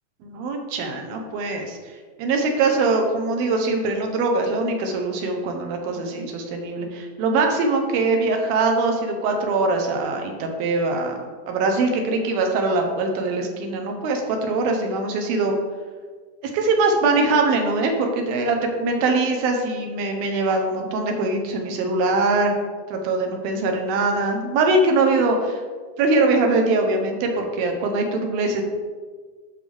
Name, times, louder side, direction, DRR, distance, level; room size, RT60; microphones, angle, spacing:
voice 1, 0.2-1.8 2.2-11.1 11.5-15.5 16.5-22.6 22.9-25.6 26.0-28.6, right 3 dB, 80° right, 3 dB, 2.7 m, -22 dB
11.0 x 5.5 x 3.4 m, 1.5 s
omnidirectional pair, 4.2 m